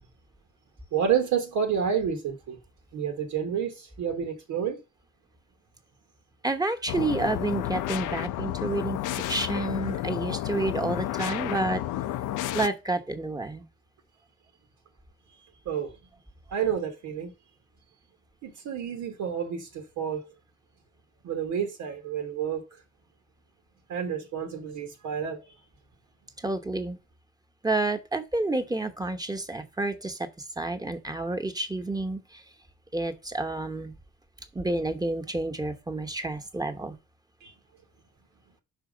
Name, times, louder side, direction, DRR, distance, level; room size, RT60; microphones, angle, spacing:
voice 1, 0.9-2.6 2.9-4.8 15.6-16.0 16.5-17.3 18.4-20.2 21.2-22.6 23.9-25.4 37.4-37.5, right 8 dB, 85° right, 1.4 m, -29 dB
voice 2, 6.4-11.8 12.5-13.7 26.4-27.0 27.6-30.3 30.6-32.4 32.9-33.9 34.5-37.0, right 2 dB, 10° right, 1.1 m, -29 dB
sound 1, 6.9-12.7, left 13 dB, 85° left, 0.5 m, -31 dB
5.6 x 4.5 x 5.1 m
cardioid pair, 90°, 30 cm